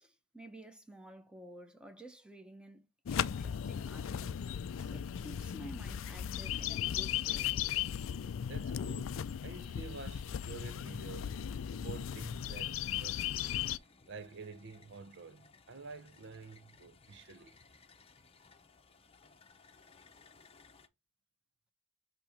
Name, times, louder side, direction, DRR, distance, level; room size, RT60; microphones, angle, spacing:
voice 1, 0.0-4.4 4.8-7.6, right 1 dB, 5° right, 1.0 m, -52 dB
sound 1, 3.1-13.8, left 9 dB, 75° left, 0.4 m, -37 dB
sound 2, 8.1-10.8 11.3-20.9, left 4 dB, 30° left, 0.8 m, -63 dB
voice 2, 8.5-9.2 9.4-11.4 11.7-13.6 14.1-17.6, right 4 dB, 60° right, 0.8 m, -49 dB
8.5 x 3.0 x 5.0 m
head